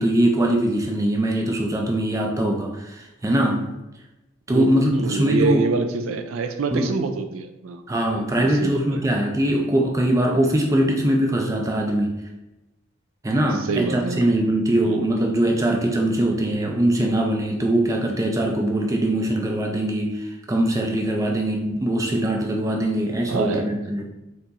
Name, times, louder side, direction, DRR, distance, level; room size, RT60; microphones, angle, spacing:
voice 1, 0.0-3.7 4.5-5.7 6.7-6.9 7.9-12.1 13.2-24.1, right 1 dB, 15° right, 1 dB, 0.3 m, -22 dB
voice 2, 4.5-7.8 8.1-9.0 13.7-14.3 14.8-15.0 23.3-23.7, right 4 dB, 85° right, 7 dB, 0.4 m, -26 dB
4.4 x 2.9 x 2.5 m, 0.99 s
head